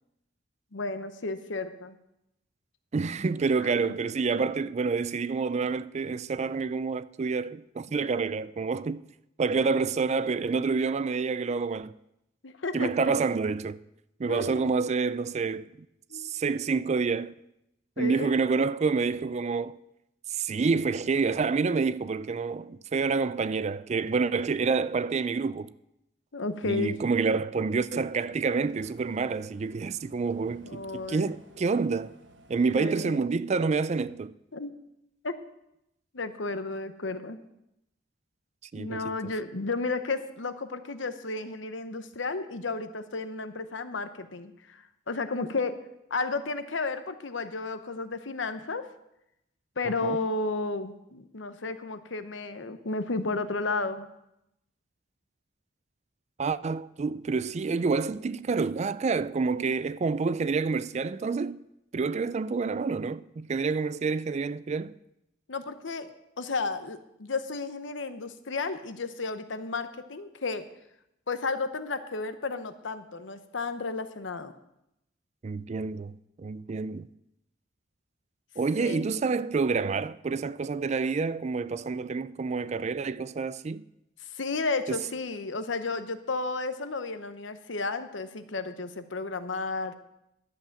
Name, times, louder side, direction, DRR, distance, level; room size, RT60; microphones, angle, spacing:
voice 1, 0.7-2.0 3.6-4.0 12.4-13.1 14.3-14.7 16.1-16.3 18.0-18.3 26.3-27.0 30.6-31.3 32.8-33.3 34.5-34.7 35.2-35.3 36.1-37.4 38.8-45.7 46.1-48.8 49.8-54.1 65.5-66.1 66.4-70.7 71.3-74.5 78.8-79.2 84.3-90.0, left 3 dB, 90° left, 1.0 m, -33 dB
voice 2, 2.9-9.0 9.4-11.9 12.7-13.8 14.2-15.7 16.1-17.3 18.0-19.8 20.3-25.7 26.6-32.1 32.5-34.3 38.7-39.3 49.8-50.2 56.4-61.6 61.9-64.9 75.4-77.1 78.6-83.8 84.9-85.0, right 4 dB, 35° right, 0.4 m, -28 dB
sound 1, 27.7-32.7, right 2 dB, 75° right, 1.1 m, -55 dB
11.5 x 7.8 x 7.3 m
head